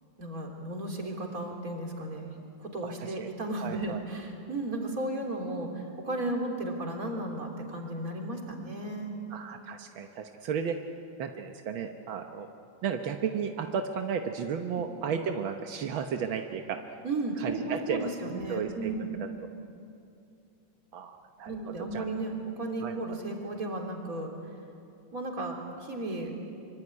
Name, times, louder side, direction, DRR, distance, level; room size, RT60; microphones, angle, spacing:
voice 1, 0.2-2.3 2.6-9.1 17.0-19.2 21.5-24.3 25.1-26.3, right 2 dB, 45° right, 2 dB, 3.8 m, -34 dB
voice 2, 3.6-4.0 9.3-10.8 11.2-12.5 12.8-16.8 17.4-18.9 20.9-21.5 21.9-22.0 22.8-22.9, right 7 dB, 85° right, 5 dB, 1.9 m, -33 dB
25.0 x 24.5 x 9.7 m, 2.5 s
omnidirectional pair, 2.1 m